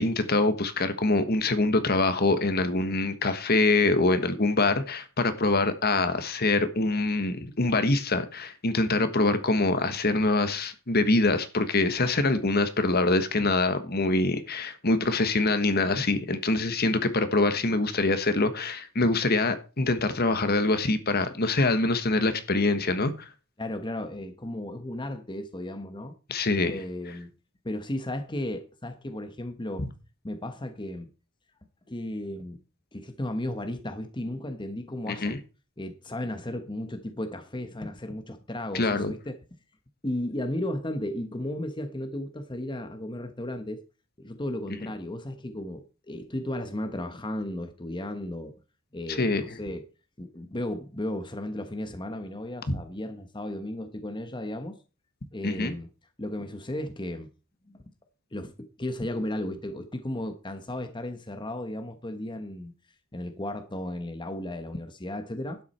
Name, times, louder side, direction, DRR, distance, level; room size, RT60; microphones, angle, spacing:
voice 1, 0.0-23.3 26.3-26.8 35.1-35.4 38.7-39.1 49.1-49.4 52.7-52.8 55.4-55.7, left 2 dB, 45° left, 1.4 m, -24 dB
voice 2, 23.6-26.1 26.7-27.3 27.6-29.9 30.2-31.1 31.9-32.6 32.9-35.4 35.8-39.4 40.0-43.8 44.2-48.5 48.9-49.9 50.2-54.8 55.3-55.9 56.2-57.3 57.7-57.8 58.3-62.7 63.1-65.6, left 1 dB, 20° left, 1.1 m, -34 dB
12.0 x 9.6 x 4.4 m
head